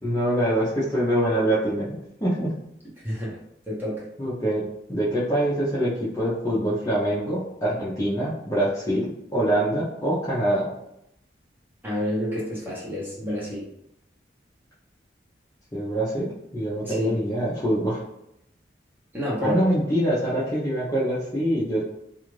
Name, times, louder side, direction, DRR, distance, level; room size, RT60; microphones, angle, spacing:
voice 1, 0.0-2.5 4.2-4.6 4.9-10.7 15.7-16.3 16.5-18.0 19.4-21.8, right 1 dB, 20° left, -9 dB, 0.6 m, -24 dB
voice 2, 3.0-3.3 3.7-4.0 11.8-13.6 16.8-17.2 19.1-19.6, equal, 10° right, -7 dB, 0.9 m, -28 dB
2.4 x 2.4 x 3.1 m, 0.81 s
head